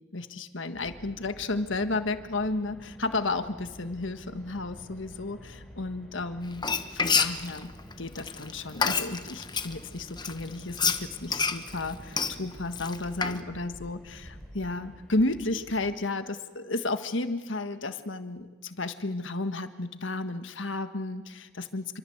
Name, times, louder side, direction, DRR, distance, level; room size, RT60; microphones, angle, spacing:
voice 1, 0.1-22.0, left 2 dB, 65° left, 9 dB, 1.6 m, -33 dB
Car, 0.7-15.9, equal, ahead, 4.2 m, -49 dB
Frying (food), 6.5-9.7 10.2-13.4, left 5 dB, 20° left, 1.2 m, -28 dB
27.5 x 25.0 x 8.0 m, 1.3 s
head